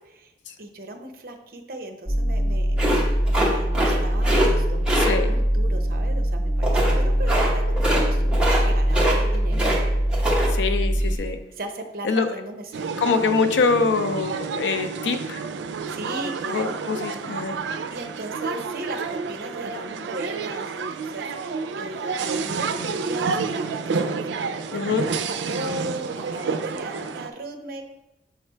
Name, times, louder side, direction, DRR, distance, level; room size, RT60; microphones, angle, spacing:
voice 1, 0.0-0.3 0.6-2.8 3.0-9.7 11.0-11.2 11.6-12.9 15.9-16.8 17.9-24.2 24.7-27.9, right 1 dB, 50° right, 5 dB, 0.7 m, -37 dB
sound 1, 2.1-11.2, equal, 60° left, 1.8 m, -22 dB
sound 2, 2.8-4.5 4.9-5.1 6.6-7.0 7.3-7.5 7.8-8.1 8.3-8.6 8.9-9.8 10.1-10.5, right 1 dB, 5° right, 0.9 m, -23 dB
voice 2, 4.9-5.3 10.5-11.4 12.0-12.3 13.0-15.4 16.5-17.6 24.7-25.1, left 4 dB, 85° left, 8 dB, 0.5 m, -24 dB
sound 3, 12.7-27.3, right 5 dB, 80° right, 0.4 m, -29 dB
6.8 x 3.3 x 4.5 m, 0.93 s
head